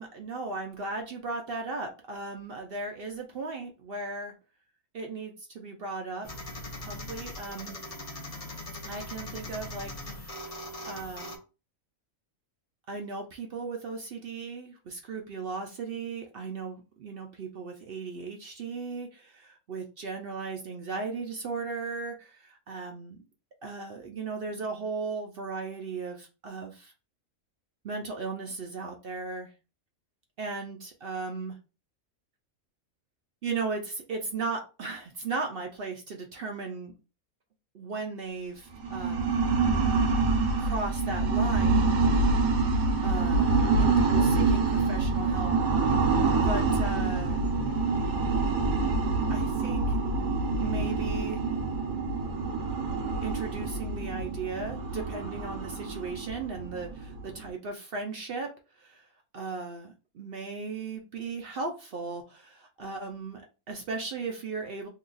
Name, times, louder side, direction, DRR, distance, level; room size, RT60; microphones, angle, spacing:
voice 1, 0.0-4.3 4.9-6.3 6.8-7.8 8.8-10.4 10.8-11.3 12.9-23.2 23.6-26.9 27.8-29.5 30.4-31.6 33.4-36.9 37.7-39.4 40.6-41.9 43.0-43.5 43.8-45.5 46.4-47.4 49.3-50.0 50.6-51.4 53.2-58.5 58.8-59.1 59.3-64.9, right 4 dB, 65° right, 0.6 m, -36 dB
sound 1, 6.2-11.4, left 1 dB, 40° left, 0.6 m, -40 dB
sound 2, 38.7-57.5, right 3 dB, 80° right, 1.1 m, -26 dB
2.8 x 2.3 x 3.8 m
omnidirectional pair, 1.5 m